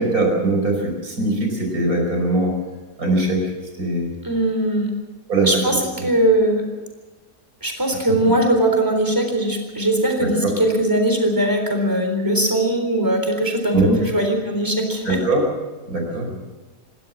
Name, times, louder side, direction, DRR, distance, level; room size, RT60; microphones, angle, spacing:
voice 1, 0.0-2.5 3.0-3.4 3.8-4.1 5.3-5.5 6.0-6.1 10.4-10.5 13.7-14.0 15.0-15.4 15.9-16.4, right 2 dB, 60° right, 2 dB, 5.3 m, -20 dB
voice 2, 4.2-4.9 5.4-5.8 6.0-6.6 7.6-15.2, right 1 dB, 10° right, 3 dB, 3.9 m, -20 dB
27.0 x 13.0 x 7.5 m, 1.2 s
omnidirectional pair, 1.7 m